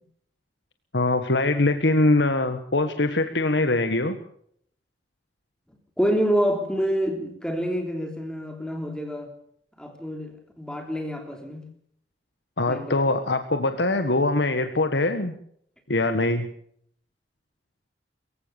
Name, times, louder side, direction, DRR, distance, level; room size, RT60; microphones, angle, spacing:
voice 1, 0.9-4.2 12.6-15.3 15.9-16.5, left 2 dB, 85° left, 1.6 m, -22 dB
voice 2, 6.0-9.3 9.8-11.6 12.7-13.1, equal, 5° left, 3.3 m, -27 dB
23.0 x 16.0 x 7.1 m
head